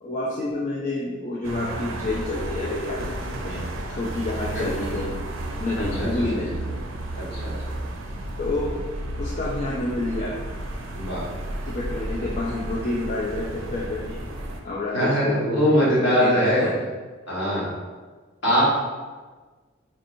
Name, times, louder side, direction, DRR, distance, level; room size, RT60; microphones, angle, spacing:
voice 1, 0.0-3.2 3.4-5.2 5.6-6.8 8.4-8.8 9.2-10.3 11.7-14.2 14.6-16.7, left 2 dB, 35° left, -5 dB, 0.4 m, -29 dB
sound 1, 1.4-14.6, right 1 dB, 75° right, 0.5 m, -32 dB
voice 2, 5.8-6.1 7.2-7.5 10.9-11.2 14.9-16.7 17.3-17.7 18.4-18.6, equal, 60° left, -8 dB, 1.4 m, -22 dB
4.3 x 2.9 x 2.6 m, 1.4 s
head